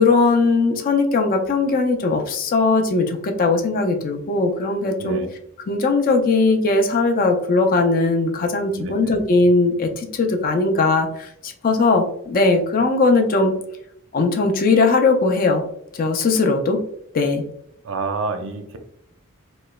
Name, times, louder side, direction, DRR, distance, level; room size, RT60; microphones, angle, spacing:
voice 1, 0.0-5.2 5.7-13.5 14.1-15.6 15.9-16.8 17.1-17.4, left 3 dB, 45° left, 4 dB, 0.4 m, -19 dB
voice 2, 8.7-9.2 17.8-18.8, right 3 dB, 65° right, 7 dB, 0.4 m, -28 dB
3.0 x 2.0 x 2.2 m, 0.71 s
head